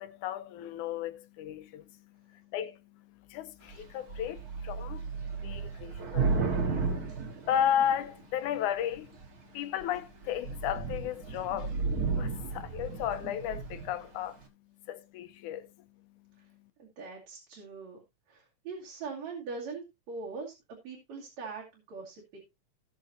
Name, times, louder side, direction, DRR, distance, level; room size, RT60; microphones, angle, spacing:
voice 1, 0.0-9.2 9.5-11.8 12.1-14.4 14.9-15.7, left 10 dB, 85° left, 2.3 m, -34 dB
Thunder / Rain, 3.7-8.2 8.9-9.4 9.8-10.0 10.2-14.0, right 4 dB, 40° right, 1.6 m, -33 dB
voice 2, 16.8-18.0 18.3-20.5 20.8-22.4, right 4 dB, 65° right, 3.6 m, -42 dB
17.5 x 6.4 x 2.8 m
omnidirectional pair, 3.5 m